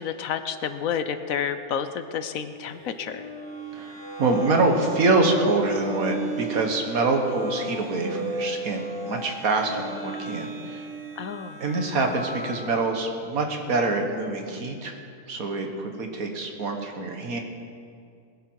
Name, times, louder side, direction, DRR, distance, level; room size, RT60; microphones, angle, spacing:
voice 1, 0.0-3.3 11.2-11.6, left 7 dB, 70° left, 10 dB, 1.1 m, -30 dB
sound 1, 2.6-12.9, right 2 dB, 15° left, 3.2 m, -34 dB
voice 2, 3.7-10.9 11.6-15.0 15.3-17.4, right 3 dB, 70° right, 4 dB, 1.9 m, -25 dB
20.5 x 11.0 x 4.7 m, 2.3 s
omnidirectional pair, 1.6 m